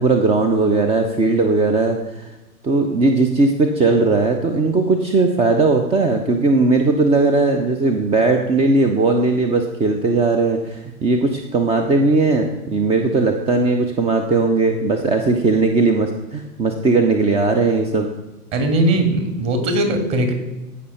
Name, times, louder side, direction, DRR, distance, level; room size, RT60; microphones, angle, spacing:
voice 1, 0.0-2.3 2.6-18.1, right 3 dB, 15° right, 5 dB, 0.7 m, -18 dB
voice 2, 18.5-20.3, right 1 dB, 35° right, 5 dB, 2.8 m, -19 dB
15.5 x 5.6 x 5.6 m, 1.0 s
figure-of-eight pair, 105°, 46 cm